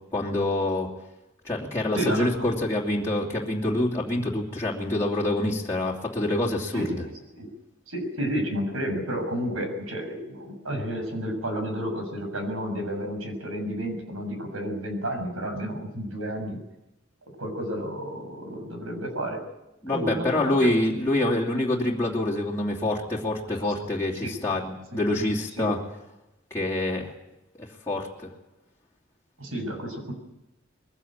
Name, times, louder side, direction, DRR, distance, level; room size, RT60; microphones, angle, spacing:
voice 1, 0.1-0.9 1.4-7.0 19.8-25.8 26.5-27.1 27.6-28.3, left 1 dB, 15° left, -5 dB, 2.9 m, -26 dB
voice 2, 1.9-2.4 6.7-7.5 7.9-16.6 17.4-19.4 19.9-20.7 23.5-23.7 24.2-24.3 25.6-25.7 29.4-30.1, equal, 75° right, 5 dB, 6.7 m, -31 dB
22.0 x 15.5 x 8.9 m, 0.95 s
head